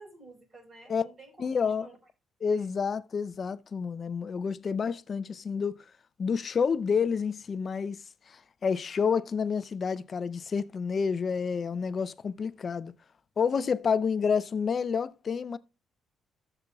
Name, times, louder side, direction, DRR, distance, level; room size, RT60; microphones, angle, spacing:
voice 1, 0.0-2.0 2.5-2.7, right 3 dB, 40° right, 4.2 m, -52 dB
voice 2, 1.4-1.9 2.4-5.8 6.2-8.0 8.3-12.9 13.4-15.6, left 6 dB, 45° left, 0.5 m, -29 dB
14.5 x 6.8 x 2.3 m
cardioid pair, 90°, 0 cm